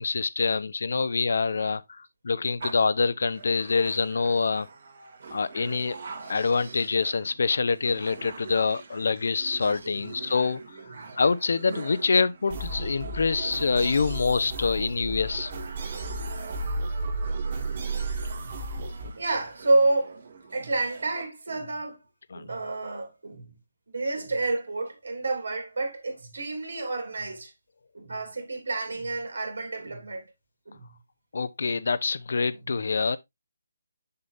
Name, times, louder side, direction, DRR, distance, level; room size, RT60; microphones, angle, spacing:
voice 1, 0.0-4.7 5.3-6.0 6.3-10.6 10.9-15.5 22.3-22.4 31.3-33.2, left 4 dB, 65° left, 0.7 m, -26 dB
sound 1, 2.6-21.2, right 5 dB, 55° right, 2.4 m, -44 dB
voice 2, 6.2-6.9 9.6-10.0 12.6-12.7 13.4-13.6 15.7-15.9 16.6-16.8 17.5-17.8 18.3-18.6 19.2-20.2 20.5-22.0 22.3-23.5 23.9-27.5 27.9-30.2 30.7-30.9 31.6-31.7 32.5-32.6, right 2 dB, 80° right, 3.0 m, -30 dB
sound 2, 12.5-19.1, right 2 dB, 40° right, 2.4 m, -33 dB
7.0 x 6.8 x 2.6 m
hypercardioid pair, 160°, 0 cm